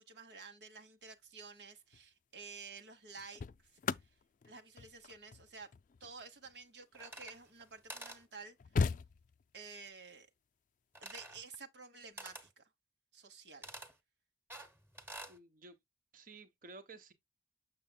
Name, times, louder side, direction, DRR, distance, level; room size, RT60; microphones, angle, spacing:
voice 1, 0.0-3.4 4.0-4.1 4.4-5.7 6.0-8.6 9.5-10.3 11.0-12.6 13.1-13.7, right 4 dB, 75° right, 1.1 m, -51 dB
sound 1, 1.8-2.1 2.9-7.5 8.1-8.2 8.4-9.7 11.3-11.6, left 5 dB, 45° left, 0.4 m, -39 dB
sound 2, 6.9-7.6 7.9-8.2 11.0-11.4 12.2-12.5 13.6-13.9 14.5-15.4, right 1 dB, 10° right, 1.2 m, -48 dB
voice 2, 15.3-15.8 16.1-17.1, right 3 dB, 50° right, 1.0 m, -54 dB
7.1 x 6.7 x 2.2 m
head